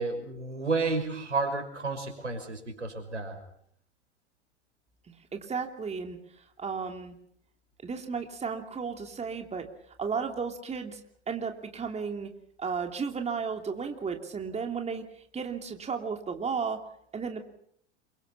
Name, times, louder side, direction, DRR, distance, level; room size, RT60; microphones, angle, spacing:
voice 1, 0.0-3.4, right 3 dB, 90° right, 5 dB, 5.6 m, -31 dB
voice 2, 5.1-7.2 7.8-9.7 10.0-11.0 11.3-12.3 12.6-16.8 17.1-17.5, right 5 dB, 20° right, 4 dB, 2.8 m, -34 dB
27.5 x 24.5 x 5.8 m, 0.68 s
figure-of-eight pair, 90°, 35 cm